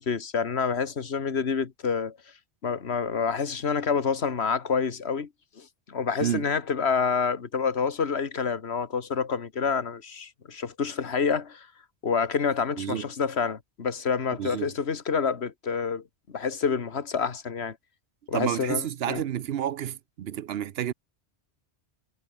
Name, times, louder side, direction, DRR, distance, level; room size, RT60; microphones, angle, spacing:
voice 1, 0.0-2.2 2.6-5.3 5.6-11.7 12.0-17.8 18.3-19.2, left 6 dB, 70° left, 1.8 m, -28 dB
voice 2, 12.8-13.1 14.4-14.7 18.3-20.9, right 10 dB, 65° right, 0.8 m, -30 dB
omnidirectional pair, 1.1 m